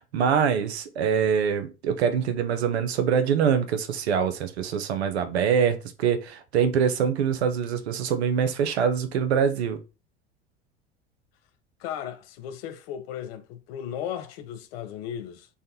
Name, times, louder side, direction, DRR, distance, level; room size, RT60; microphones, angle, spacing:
voice 1, 0.1-9.8, right 7 dB, 80° right, 0.6 m, -24 dB
voice 2, 11.8-15.5, left 9 dB, 70° left, 0.6 m, -36 dB
3.5 x 2.2 x 2.7 m
hypercardioid pair, 75°, 32 cm